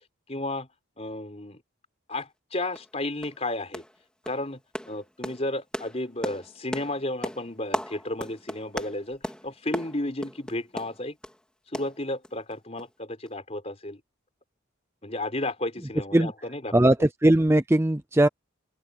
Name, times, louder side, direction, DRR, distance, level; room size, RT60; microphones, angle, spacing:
voice 1, 0.3-0.7 1.0-1.6 2.1-3.8 4.2-4.6 4.9-11.2 11.7-14.0 15.0-16.7, left 1 dB, 30° left, 4.4 m, -33 dB
sound 1, 2.2-2.3 2.8-2.9 3.2-3.4 3.7-4.0 4.3-11.4 11.7-12.5 12.8-12.9 13.3-13.4, equal, 5° left, 3.3 m, -37 dB
voice 2, 16.7-18.3, right 1 dB, 10° right, 0.5 m, -20 dB
open air
head